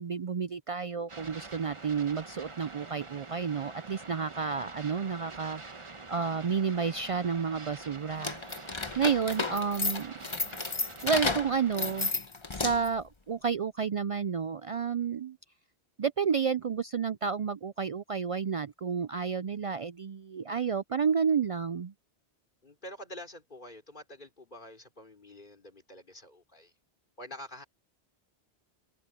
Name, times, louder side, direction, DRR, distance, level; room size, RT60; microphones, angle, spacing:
voice 1, 0.0-5.6 6.1-10.1 11.0-12.1 12.5-15.4 16.0-21.9, right 6 dB, 65° right, 0.3 m, -31 dB
sound 1, 1.1-12.1, right 3 dB, 30° right, 1.2 m, -46 dB
sound 2, 8.2-13.0, left 3 dB, 25° left, 1.1 m, -32 dB
voice 2, 22.6-26.7 27.2-27.6, left 1 dB, 45° left, 3.9 m, -47 dB
open air
omnidirectional pair, 1.1 m